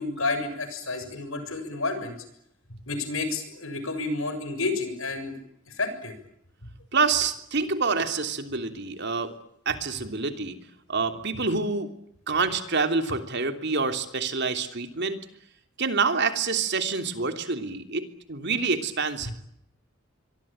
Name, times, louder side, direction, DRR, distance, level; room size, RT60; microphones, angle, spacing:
voice 1, 0.0-2.2 2.9-5.3 5.7-6.1 6.6-6.7 19.3-19.4, left 3 dB, 70° left, 9 dB, 7.1 m, -30 dB
voice 2, 6.9-9.3 9.6-10.6 10.9-11.9 12.3-15.2 15.8-19.3, right 4 dB, 55° right, 7 dB, 3.2 m, -27 dB
26.0 x 23.5 x 8.9 m, 0.72 s
head